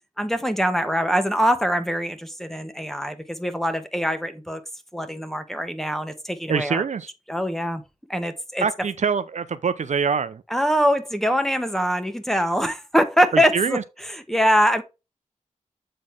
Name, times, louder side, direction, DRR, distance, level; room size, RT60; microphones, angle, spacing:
voice 1, 0.2-4.6 4.9-6.8 7.3-7.8 8.1-8.7 10.5-14.8, equal, ahead, 1.3 m, -23 dB
voice 2, 6.5-7.1 8.6-10.4 13.3-13.8, right 6 dB, 65° right, 0.6 m, -24 dB
7.6 x 4.0 x 3.5 m
cardioid pair, 60°, 13 cm